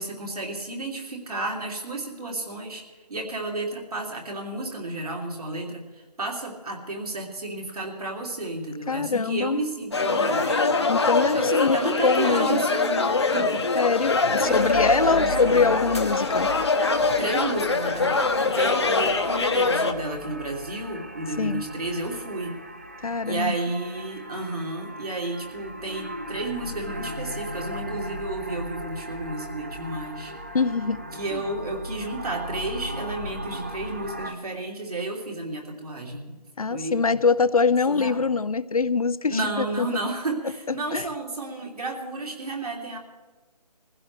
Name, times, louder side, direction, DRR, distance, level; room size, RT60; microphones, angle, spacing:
voice 1, 0.0-2.8 3.1-10.6 11.3-13.7 14.3-15.7 17.2-22.6 23.2-30.3 31.1-36.3 36.7-37.0 37.9-38.2 39.3-43.0, right 2 dB, 60° right, 0 dB, 3.2 m, -32 dB
voice 2, 8.9-9.6 10.9-12.6 13.7-16.5 21.4-21.6 23.0-23.5 30.5-31.0 31.3-31.4 36.6-39.9 40.9-41.1, left 4 dB, 60° left, 16 dB, 0.5 m, -24 dB
sound 1, 9.9-19.9, left 3 dB, 40° left, 0.9 m, -23 dB
sound 2, 10.1-11.0 12.6-13.6 14.9-15.6, left 3 dB, 80° left, 2.0 m, -41 dB
sound 3, 14.5-34.3, equal, 20° right, 0.6 m, -37 dB
22.0 x 15.5 x 3.4 m, 1.2 s
figure-of-eight pair, 170°, 21 cm